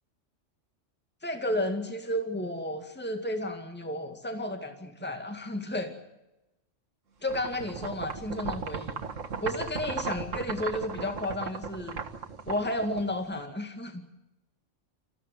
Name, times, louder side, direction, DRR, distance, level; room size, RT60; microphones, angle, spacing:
voice 1, 1.2-5.9 7.2-9.0 9.4-12.0 12.5-14.0, left 1 dB, 10° left, 5 dB, 2.2 m, -32 dB
sound 1, 7.3-13.4, right 5 dB, 90° right, 1.9 m, -36 dB
26.5 x 15.5 x 9.5 m, 0.96 s
omnidirectional pair, 1.3 m